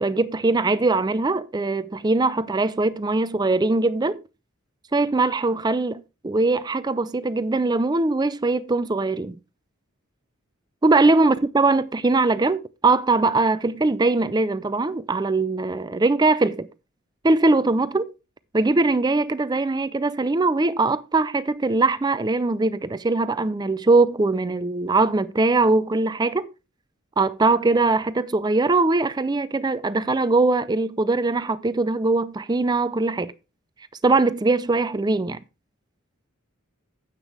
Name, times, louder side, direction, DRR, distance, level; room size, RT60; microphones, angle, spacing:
voice 1, 0.0-4.2 4.9-9.4 10.8-16.7 17.2-18.1 18.5-26.5 27.2-33.3 34.0-35.4, right 3 dB, 20° right, 0.4 m, -21 dB
9.7 x 8.1 x 3.3 m
head